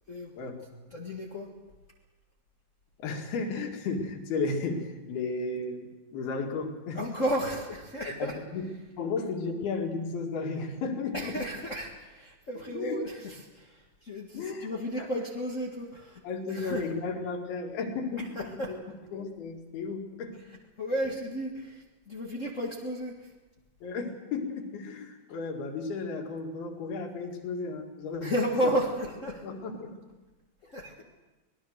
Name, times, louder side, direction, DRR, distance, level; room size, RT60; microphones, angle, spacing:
voice 1, 0.4-0.9 3.0-7.0 8.1-8.7 9.0-11.4 12.7-13.0 14.3-14.7 15.0-15.1 16.2-18.8 19.1-20.4 23.8-28.3 28.6-28.7 29.4-30.1 30.6-30.7, left 4 dB, 75° left, 2 dB, 4.1 m, -34 dB
voice 2, 0.9-1.5 6.9-8.4 11.1-16.2 16.5-16.9 18.2-18.8 20.8-23.3 28.2-29.4 30.6-31.0, equal, 60° left, -1 dB, 0.8 m, -33 dB
25.5 x 19.5 x 6.5 m, 1.1 s
omnidirectional pair, 4.5 m